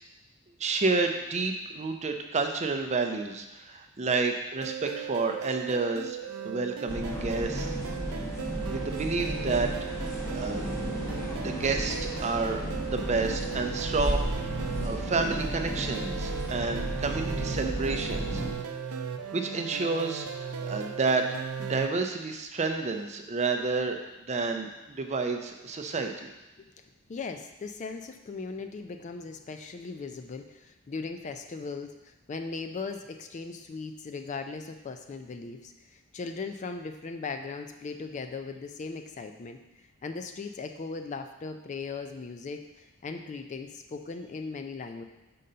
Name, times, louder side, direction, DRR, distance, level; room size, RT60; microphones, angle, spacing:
voice 1, 0.6-7.7 8.1-8.3 8.6-10.7 11.3-12.6 12.9-14.3 14.8-18.4 18.7-18.8 19.3-21.3 21.6-24.0 24.3-26.3, right 3 dB, 30° right, 5 dB, 0.5 m, -30 dB
sound 1, 4.6-21.9, right 7 dB, 90° right, 0.5 m, -37 dB
sound 2, 6.9-18.5, equal, 15° left, 0.9 m, -33 dB
voice 2, 27.1-39.6 40.0-45.0, left 4 dB, 35° left, 6 dB, 0.3 m, -38 dB
5.4 x 3.8 x 5.5 m, 1.0 s
head